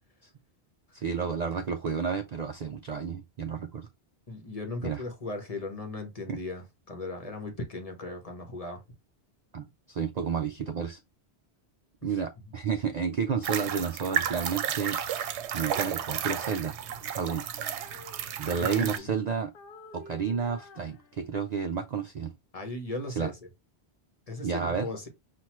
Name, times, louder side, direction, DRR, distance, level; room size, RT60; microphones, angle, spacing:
voice 1, 0.9-3.9 4.8-5.0 6.3-6.4 9.5-11.0 12.0-15.0 15.5-16.8 17.1-17.4 18.4-19.5 19.9-22.3 23.2-23.3 24.4-24.9, right 6 dB, 55° right, 0.4 m, -31 dB
voice 2, 4.3-8.8 12.1-12.2 18.8-19.1 22.5-23.4 24.3-25.1, left 2 dB, 35° left, 1.0 m, -37 dB
sound 1, 13.4-19.0, right 9 dB, 90° right, 0.9 m, -32 dB
Female singing, 17.0-19.2 19.5-21.6, left 3 dB, 60° left, 0.7 m, -52 dB
5.8 x 2.5 x 3.0 m
omnidirectional pair, 1.1 m